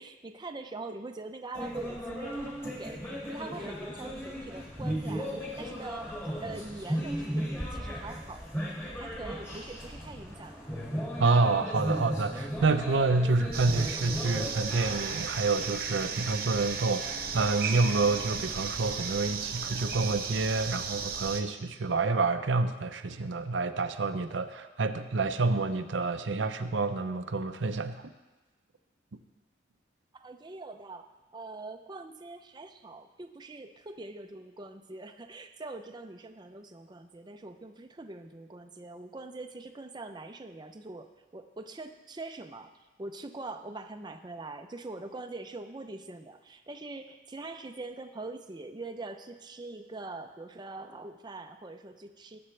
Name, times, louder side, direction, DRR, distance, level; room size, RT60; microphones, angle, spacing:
voice 1, 0.0-8.4 9.0-10.7 30.1-31.1 31.3-42.7 43.0-52.4, right 2 dB, 25° right, 6 dB, 0.5 m, -43 dB
sound 1, 1.5-14.9, equal, 15° left, 2.0 m, -36 dB
voice 2, 11.2-28.0, right 3 dB, 90° right, 8 dB, 0.7 m, -28 dB
sound 2, 13.5-21.4, right 6 dB, 55° right, 1.0 m, -35 dB
19.0 x 7.9 x 3.3 m, 1.1 s
head